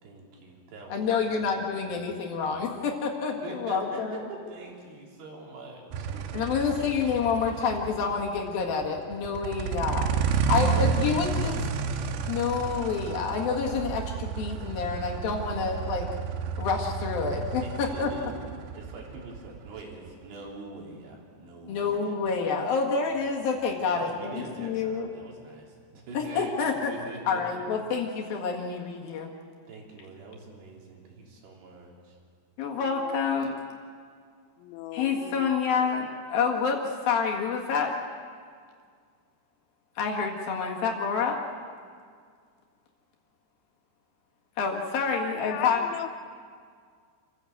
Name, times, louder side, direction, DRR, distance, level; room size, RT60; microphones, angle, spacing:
voice 1, 0.0-2.7 3.4-7.1 10.6-11.9 17.6-22.2 23.1-23.3 23.8-27.4 29.7-32.2, right 3 dB, 65° right, -1 dB, 5.3 m, -44 dB
voice 2, 0.9-4.2 6.3-11.6 12.3-16.1 16.6-18.1 21.7-25.1 26.1-26.9 27.3-29.3 32.6-33.6 34.9-37.9 40.0-41.4 44.6-45.9, left 5 dB, 60° left, 0 dB, 3.2 m, -28 dB
sound 1, 5.9-20.5, right 6 dB, 80° right, 3.2 m, -31 dB
voice 3, 34.6-35.5 45.4-46.1, left 12 dB, 90° left, 9 dB, 3.4 m, -37 dB
28.0 x 15.5 x 7.8 m, 2.1 s
omnidirectional pair, 5.3 m